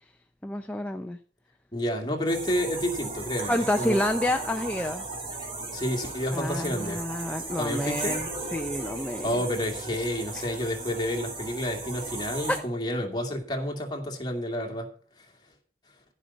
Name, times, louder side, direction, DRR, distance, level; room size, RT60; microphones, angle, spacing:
voice 1, 0.4-1.2 3.5-5.0 6.3-9.4 10.3-10.4 12.5-12.6, left 1 dB, 10° left, 6 dB, 0.6 m, -29 dB
voice 2, 1.7-4.0 5.7-7.0 7.6-8.2 9.2-14.9, equal, 25° left, 2 dB, 2.3 m, -30 dB
sound 1, 2.3-12.6, right 2 dB, 30° right, 3.3 m, -36 dB
15.5 x 5.5 x 7.1 m, 0.43 s
head